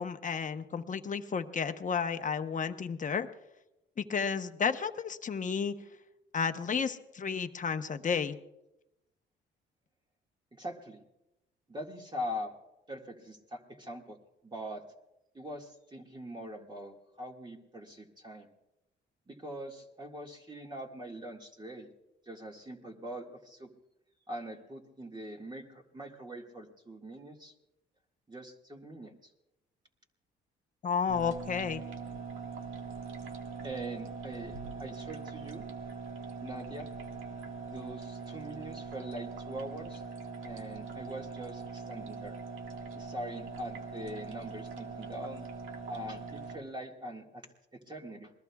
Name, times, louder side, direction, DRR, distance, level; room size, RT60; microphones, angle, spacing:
voice 1, 0.0-3.3 4.0-5.8 6.3-8.4 30.8-31.8, left 6 dB, 40° left, 8 dB, 1.0 m, -32 dB
voice 2, 10.5-11.0 11.7-12.5 12.9-14.2 14.4-14.8 15.3-18.5 19.3-21.9 22.3-23.7 24.3-27.5 28.3-29.1 33.6-35.7 36.4-36.9 37.7-40.0 40.4-42.4 42.9-45.5 45.9-47.4 47.7-48.3, equal, 20° right, 0 dB, 2.0 m, -42 dB
sound 1, 31.1-46.6, right 5 dB, 85° right, 1.9 m, -42 dB
28.0 x 21.0 x 2.4 m, 0.94 s
cardioid pair, 90°, 20 cm